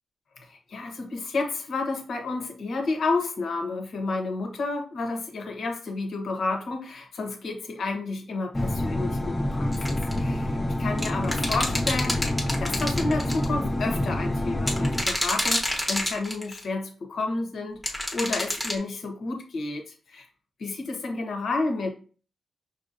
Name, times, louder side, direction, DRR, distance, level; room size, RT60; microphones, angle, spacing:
voice 1, 0.4-12.2 12.6-20.3 20.6-21.9, left 3 dB, 70° left, 2 dB, 1.0 m, -31 dB
sound 1, 8.5-15.0, left 1 dB, 15° left, 0.5 m, -27 dB
sound 2, 9.7-10.2 11.0-13.4 14.6-16.6 17.8-18.8, left 1 dB, ahead, 0.9 m, -28 dB
5.7 x 2.7 x 2.6 m, 0.39 s
cardioid pair, 100°, 0 cm